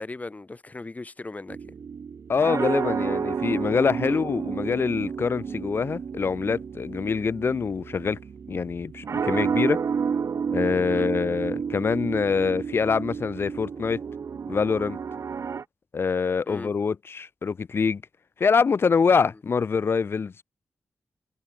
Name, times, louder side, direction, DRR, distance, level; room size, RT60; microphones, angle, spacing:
voice 1, 0.0-1.7 4.0-4.2 10.9-11.1 16.4-16.7, left 3 dB, 30° left, 4.5 m, -38 dB
sound 1, 1.5-15.6, right 6 dB, 70° right, 1.2 m, -31 dB
voice 2, 2.3-8.2 8.5-9.8 10.5-14.0 14.5-15.0 15.9-18.0 18.4-20.4, left 5 dB, 50° left, 0.4 m, -25 dB
cardioid pair, 80°, 5 cm